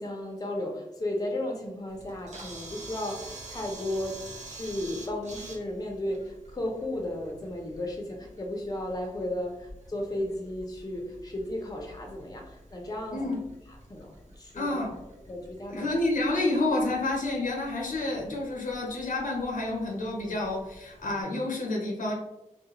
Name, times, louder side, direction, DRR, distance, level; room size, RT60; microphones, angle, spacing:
voice 1, 0.0-4.2 4.4-13.3 13.9-14.7 15.3-15.9, left 1 dB, 30° left, 1 dB, 0.6 m, -34 dB
Camera, 1.9-21.2, right 2 dB, 60° right, 0.7 m, -48 dB
voice 2, 14.5-15.0 15.7-22.1, left 2 dB, 80° left, -1 dB, 0.6 m, -29 dB
2.4 x 2.1 x 2.9 m, 0.93 s
cardioid pair, 45°, 14 cm